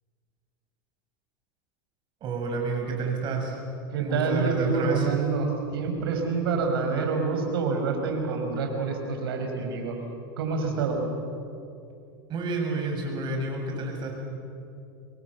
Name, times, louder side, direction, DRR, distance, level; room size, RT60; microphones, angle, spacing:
voice 1, 2.2-3.6 4.0-5.1 12.3-14.1, right 3 dB, 40° right, 2 dB, 7.3 m, -29 dB
voice 2, 3.9-10.0 10.4-11.0, right 4 dB, 80° right, 4 dB, 5.1 m, -27 dB
27.0 x 22.5 x 7.1 m, 2.6 s
hypercardioid pair, 105°, 12 cm